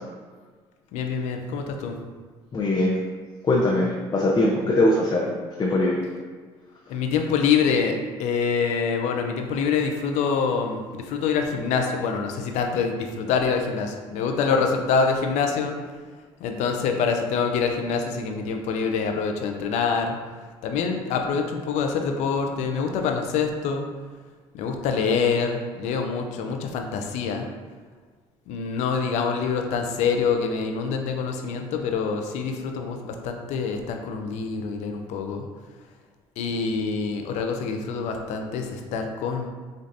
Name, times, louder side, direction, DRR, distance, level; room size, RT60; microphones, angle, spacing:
voice 1, 0.9-1.9 6.9-15.8 16.4-20.2 20.6-23.8 24.5-27.5 28.5-35.5 36.4-39.5, left 5 dB, 75° left, 4 dB, 0.5 m, -25 dB
voice 2, 2.5-3.0 3.5-5.3 5.6-6.0, left 1 dB, 35° left, -3 dB, 0.6 m, -21 dB
5.3 x 2.6 x 2.6 m, 1.5 s
supercardioid pair, 80°, 12 cm